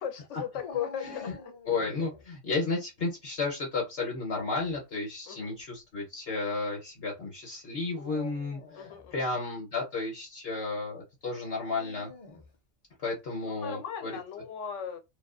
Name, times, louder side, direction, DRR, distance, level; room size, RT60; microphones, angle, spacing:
voice 1, 0.0-1.5 5.3-5.6 8.7-9.3 13.4-15.0, left 8 dB, 85° left, 1.0 m, -37 dB
Dog, 0.6-2.2 4.3-4.8 5.6-5.7 7.8-9.1 11.5-12.5, left 3 dB, 40° left, 0.5 m, -47 dB
voice 2, 1.0-1.3 1.7-12.1 13.0-14.1, left 3 dB, 60° left, 1.0 m, -33 dB
2.5 x 2.3 x 2.3 m
omnidirectional pair, 1.2 m